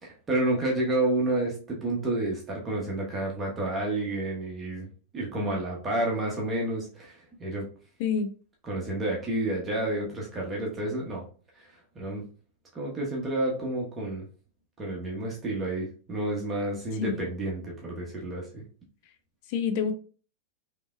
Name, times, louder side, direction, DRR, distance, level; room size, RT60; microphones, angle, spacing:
voice 1, 0.0-4.9 5.1-7.7 8.7-11.2 11.6-11.7 11.9-12.2 12.7-14.2 14.8-18.6, right 2 dB, 20° right, 1.1 m, -30 dB
voice 2, 8.0-8.3 17.0-17.2 19.5-19.9, left 6 dB, 45° left, 0.6 m, -27 dB
5.2 x 2.9 x 2.3 m
figure-of-eight pair, 90°, 0 cm